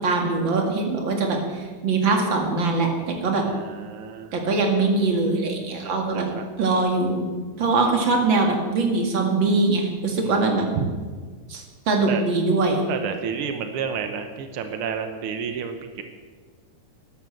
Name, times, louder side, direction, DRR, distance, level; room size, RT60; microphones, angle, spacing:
voice 1, 0.0-3.5 4.3-6.3 6.6-7.3 7.6-10.6 11.5-12.8, right 3 dB, 40° right, 2 dB, 2.4 m, -22 dB
voice 2, 3.4-4.3 5.8-6.5 10.2-10.5 10.7-10.9 12.1-12.2 12.9-16.0, right 7 dB, 80° right, 7 dB, 1.2 m, -30 dB
13.0 x 11.5 x 7.8 m, 1.5 s
omnidirectional pair, 3.8 m